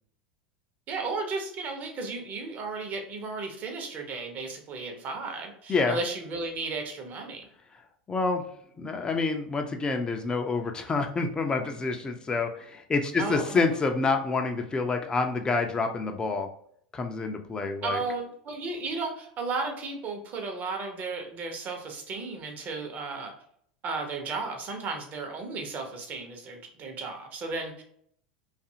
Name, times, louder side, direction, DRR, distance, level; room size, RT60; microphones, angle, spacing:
voice 1, 0.9-7.5 13.2-13.7 17.8-23.3 23.8-27.8, right 3 dB, 40° right, 3 dB, 0.8 m, -34 dB
voice 2, 8.1-8.4 8.8-16.5 16.9-18.0, left 4 dB, 20° left, 5 dB, 0.4 m, -27 dB
2.6 x 2.5 x 2.7 m, 0.65 s
hypercardioid pair, 85°, 4 cm